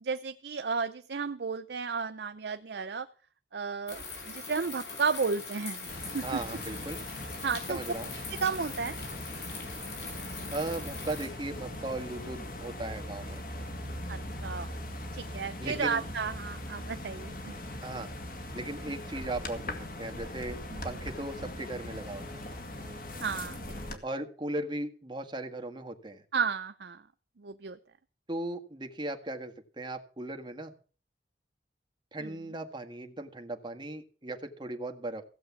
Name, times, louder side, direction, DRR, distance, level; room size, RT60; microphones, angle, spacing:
voice 1, 0.0-3.1 3.5-5.9 6.1-6.4 7.4-7.8 8.3-8.9 14.1-14.7 15.2-17.5 20.7-20.8 23.2-23.6 23.9-24.0 26.3-27.0 27.4-27.8 32.2-32.3, right 5 dB, 65° right, 9 dB, 0.6 m, -33 dB
sound 1, 3.9-11.3, left 4 dB, 70° left, 5.0 m, -42 dB
sound 2, 5.9-24.0, left 1 dB, 50° left, 2.1 m, -40 dB
voice 2, 6.2-7.0 7.7-8.1 10.5-13.4 15.6-16.0 17.8-18.1 18.5-20.6 20.8-22.5 24.0-26.2 28.3-30.7 32.1-35.2, right 2 dB, 25° right, 4 dB, 1.6 m, -37 dB
16.0 x 7.5 x 7.1 m, 0.40 s
head